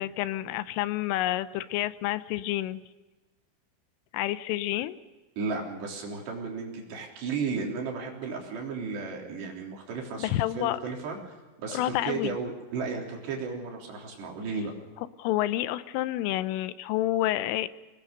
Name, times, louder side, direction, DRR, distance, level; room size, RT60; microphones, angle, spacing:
voice 1, 0.0-2.8 4.1-5.0 10.2-10.8 11.7-12.4 15.2-17.7, left 14 dB, 85° left, 14 dB, 3.4 m, -29 dB
voice 2, 5.4-14.7, right 4 dB, 60° right, 0 dB, 5.5 m, -34 dB
24.0 x 20.0 x 6.7 m, 1.2 s
omnidirectional pair, 5.7 m